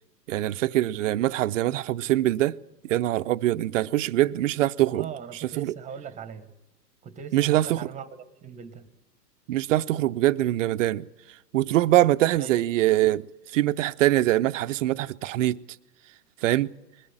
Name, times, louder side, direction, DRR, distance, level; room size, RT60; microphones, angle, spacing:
voice 1, 0.3-2.6 2.8-5.1 5.6-5.7 7.3-7.8 9.5-11.1 11.5-13.3 13.5-15.6 16.4-16.7, right 15 dB, 50° right, 0.7 m, -23 dB
voice 2, 4.8-6.5 7.0-8.9 12.4-12.6, right 6 dB, 15° right, 1.4 m, -40 dB
21.5 x 15.5 x 8.9 m
hypercardioid pair, 135°, 50 cm